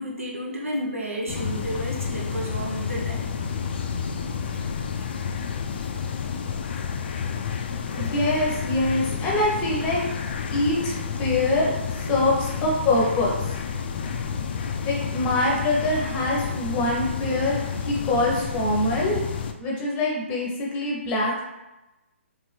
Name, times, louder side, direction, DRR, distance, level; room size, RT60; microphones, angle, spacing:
voice 1, 0.0-3.3 5.8-5.9 12.1-12.2, equal, 85° right, -3 dB, 1.1 m, -32 dB
sound 1, 1.3-19.5, left 6 dB, 50° left, 0.3 m, -30 dB
voice 2, 7.9-10.0 10.5-11.7 12.1-13.5 14.8-19.2 19.6-21.4, left 2 dB, 20° left, -3 dB, 0.8 m, -24 dB
3.2 x 2.8 x 3.2 m, 0.99 s
figure-of-eight pair, 140°, 7 cm